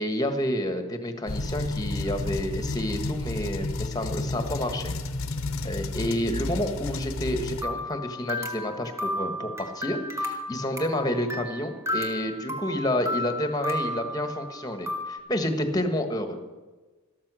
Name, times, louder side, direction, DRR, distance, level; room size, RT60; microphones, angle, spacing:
voice 1, 0.0-4.9 5.6-16.4, left 1 dB, 20° left, 6 dB, 1.4 m, -29 dB
sound 1, 1.3-7.6, left 2 dB, 75° left, 1.0 m, -31 dB
sound 2, 7.6-15.2, left 1 dB, 15° right, 1.3 m, -33 dB
13.0 x 13.0 x 6.2 m, 1.2 s
head